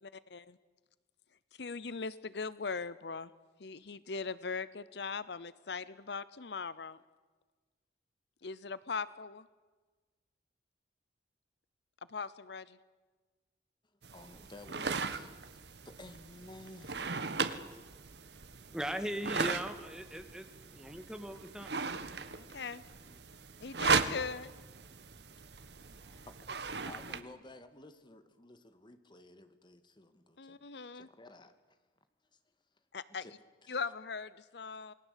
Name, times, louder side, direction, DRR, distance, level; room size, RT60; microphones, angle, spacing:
voice 1, 0.0-0.6 1.6-3.3 3.6-7.0 8.4-9.5 12.1-12.8 22.2-22.8 23.6-24.5 30.4-31.1 32.9-33.3 33.7-34.9, left 5 dB, 70° left, 17 dB, 0.7 m, -40 dB
sound 1, 14.0-27.2, right 5 dB, 70° right, 1.4 m, -37 dB
voice 2, 14.1-15.6 15.9-17.8 20.2-20.5 23.0-23.2 26.0-30.6 30.9-31.5 33.2-33.3 33.6-33.8, left 2 dB, 25° left, 10 dB, 1.8 m, -54 dB
voice 3, 18.7-21.7, equal, 5° right, 8 dB, 1.8 m, -39 dB
28.0 x 20.5 x 8.3 m, 1.3 s
head